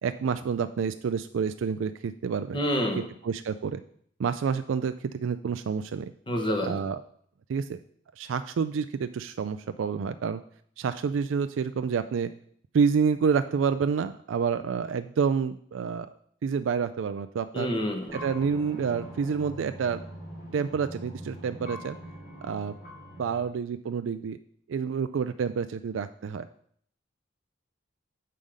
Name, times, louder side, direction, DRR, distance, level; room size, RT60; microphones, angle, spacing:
voice 1, 0.0-2.6 3.2-3.8 4.2-6.1 6.7-7.0 7.5-7.8 8.2-10.4 10.8-12.3 12.7-16.1 16.4-17.7 18.1-20.0 20.5-22.0 22.4-22.7 23.2-24.4 24.7-26.5, right 6 dB, 80° right, 11 dB, 0.3 m, -28 dB
voice 2, 2.5-3.1 6.3-6.8 17.5-18.1, equal, 25° left, 3 dB, 1.2 m, -28 dB
sound 1, 18.1-23.5, equal, 55° left, 2.9 m, -42 dB
7.6 x 5.5 x 5.0 m, 0.63 s
head